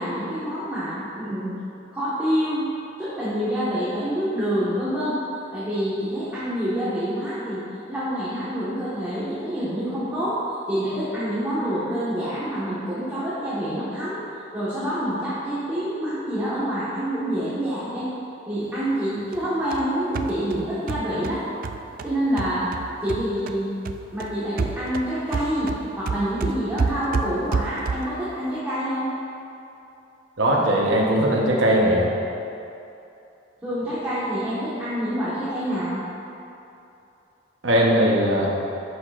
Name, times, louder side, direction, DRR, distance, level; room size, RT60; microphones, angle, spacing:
voice 1, 0.0-1.6 1.9-2.7 3.0-5.2 5.5-14.2 14.5-18.1 18.5-21.4 22.0-23.7 24.1-29.1 33.6-36.0, equal, 10° right, -12 dB, 1.4 m, -27 dB
sound 1, 19.3-23.6 23.8-28.2, right 4 dB, 50° right, 0.3 m, -30 dB
voice 2, 30.4-32.1 37.6-38.5, right 1 dB, 85° right, -2 dB, 1.1 m, -19 dB
10.5 x 6.7 x 2.5 m, 2.7 s
head